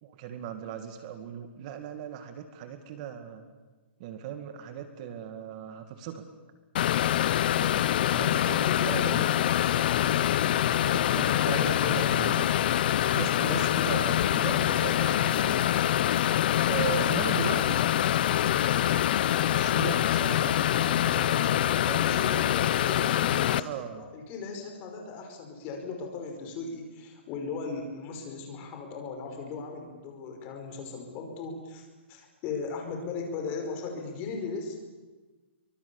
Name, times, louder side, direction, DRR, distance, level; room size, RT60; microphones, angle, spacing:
voice 1, 0.0-3.5 4.0-6.2 7.6-7.8 8.1-8.6 8.9-9.3 10.8-12.4 13.1-15.7 16.6-17.8 19.4-22.3 23.5-24.1, right 9 dB, 40° right, 8 dB, 2.2 m, -38 dB
sound 1, 6.8-23.6, left 11 dB, 50° left, 0.9 m, -25 dB
voice 2, 8.4-10.1 11.6-12.1 22.0-34.8, left 4 dB, 30° left, 3 dB, 5.3 m, -38 dB
27.5 x 24.0 x 7.2 m, 1.3 s
hypercardioid pair, 155°, 6 cm